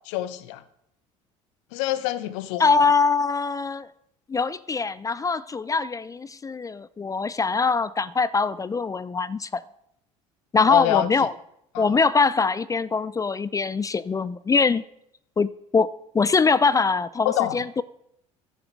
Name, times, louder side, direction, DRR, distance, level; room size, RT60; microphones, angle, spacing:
voice 1, 0.1-0.6 1.7-2.6 10.7-11.1 11.7-11.9 17.2-17.6, left 14 dB, 75° left, 0.9 m, -25 dB
voice 2, 2.6-3.9 4.3-9.6 10.5-11.3 11.8-14.8 15.4-15.9 16.1-17.8, left 4 dB, 20° left, 0.4 m, -23 dB
10.5 x 6.7 x 7.4 m
hypercardioid pair, 70°, 16 cm